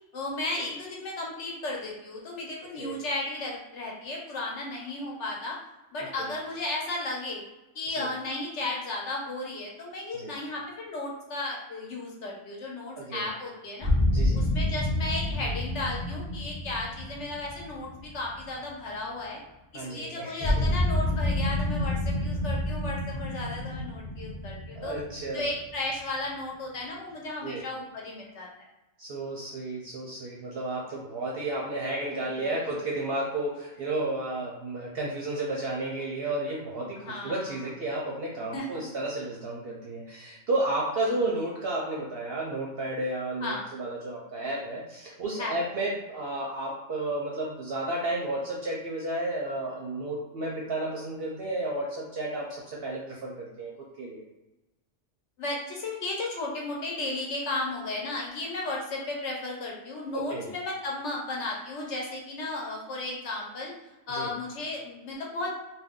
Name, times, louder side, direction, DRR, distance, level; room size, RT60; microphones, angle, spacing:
voice 1, 0.1-5.6 5.9-7.4 7.7-13.9 14.3-19.4 19.7-25.0 25.3-28.7 32.1-32.2 37.0-37.6 38.5-38.8 41.1-41.3 43.4-43.7 45.4-45.6 55.4-63.7 64.1-65.5, left 2 dB, 65° left, -2 dB, 1.0 m, -34 dB
voice 2, 13.0-13.3 14.1-14.4 19.7-20.6 24.8-25.5 27.4-27.6 29.0-53.7 54.0-54.2 60.1-60.5 64.1-64.3, right 2 dB, 60° right, -3 dB, 0.7 m, -32 dB
sound 1, 13.8-18.8 20.4-26.1, left 1 dB, 45° left, 0.6 m, -28 dB
2.5 x 2.2 x 3.6 m, 0.99 s
omnidirectional pair, 1.4 m